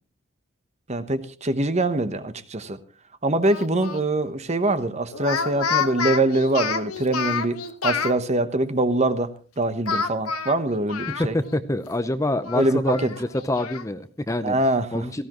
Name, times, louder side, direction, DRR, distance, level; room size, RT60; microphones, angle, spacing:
voice 1, 0.9-2.8 3.2-7.6 7.8-11.4 12.5-13.1 14.4-15.1, right 2 dB, 30° right, 11 dB, 1.0 m, -23 dB
Speech, 3.4-4.0 5.1-8.2 9.9-11.6 11.9-12.0 12.4-13.9, left 6 dB, 90° left, 1.4 m, -29 dB
voice 2, 11.2-14.6 14.9-15.3, left 1 dB, 15° left, 10 dB, 0.7 m, -26 dB
18.0 x 15.5 x 3.0 m, 0.35 s
head